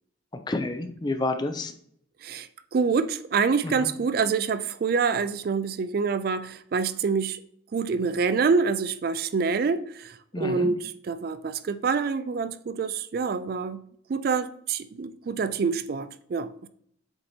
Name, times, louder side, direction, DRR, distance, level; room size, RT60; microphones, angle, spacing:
voice 1, 0.5-1.7 3.8-3.9 10.3-10.7, left 2 dB, 20° left, 0.5 m, -29 dB
voice 2, 2.2-7.4 7.7-13.8 14.1-16.7, right 5 dB, 50° right, 0.3 m, -26 dB
7.8 x 2.9 x 4.2 m
head